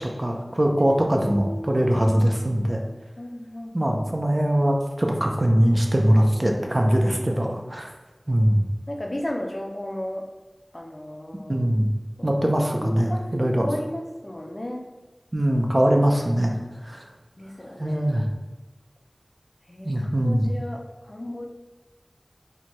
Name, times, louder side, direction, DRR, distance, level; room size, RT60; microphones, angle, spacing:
voice 1, 0.2-2.8 3.7-7.9 8.3-8.6 11.5-11.9 12.2-13.7 15.3-16.6 16.9-17.0 17.8-18.2 19.8-20.4, equal, 40° right, 2 dB, 0.4 m, -21 dB
voice 2, 0.8-1.7 3.2-4.0 7.3-7.5 8.9-10.2 10.7-11.7 12.2-12.3 12.8-14.9 17.4-18.0 19.7-21.5, left 1 dB, 45° left, 1 dB, 0.4 m, -35 dB
4.4 x 2.2 x 2.9 m, 1.2 s
wide cardioid pair, 45°, 0 cm